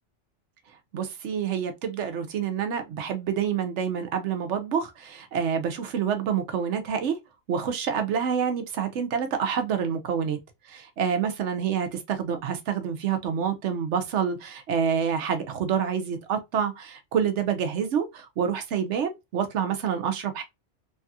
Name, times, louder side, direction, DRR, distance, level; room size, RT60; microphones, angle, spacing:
voice 1, 0.9-7.1 7.5-10.4 10.7-20.4, right 7 dB, 75° right, 0.9 m, -27 dB
3.3 x 2.3 x 2.6 m
omnidirectional pair, 1.2 m